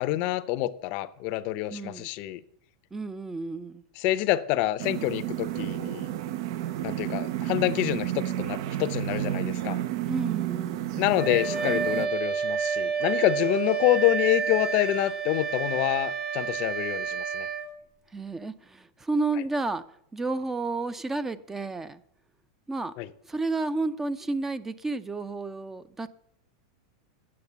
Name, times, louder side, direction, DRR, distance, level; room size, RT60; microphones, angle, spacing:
voice 1, 0.0-2.4 4.0-6.1 6.8-9.8 11.0-17.5 23.0-23.1, left 15 dB, 55° left, 0.6 m, -27 dB
voice 2, 1.7-2.1 2.9-3.8 10.1-11.0 18.1-19.8 20.1-22.0 22.7-22.9 23.2-26.2, right 3 dB, 10° right, 0.5 m, -31 dB
sound 1, 4.8-12.1, right 13 dB, 65° right, 0.6 m, -31 dB
Wind instrument woodwind instrument, 11.2-17.7, right 6 dB, 30° right, 1.1 m, -29 dB
sound 2, 11.5-11.8 13.0-13.1 13.4-13.7 14.6-15.2 15.5-16.2, right 4 dB, 80° right, 3.7 m, -51 dB
8.7 x 6.5 x 7.9 m
supercardioid pair, 120°, 3 cm